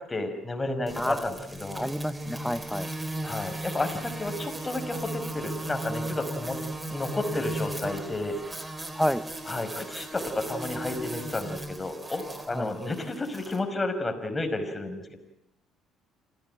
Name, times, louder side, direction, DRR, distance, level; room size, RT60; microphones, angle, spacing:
voice 1, 0.0-1.8 3.2-6.6 6.9-8.4 9.5-15.2, left 2 dB, 25° left, 6 dB, 5.3 m, -32 dB
sound 1, 0.9-13.6, right 1 dB, 15° right, 3.7 m, -36 dB
voice 2, 1.7-2.9 8.9-9.2 12.5-12.7, equal, 5° left, 11 dB, 0.9 m, -29 dB
26.5 x 16.5 x 9.1 m, 0.82 s
supercardioid pair, 65°, 0 cm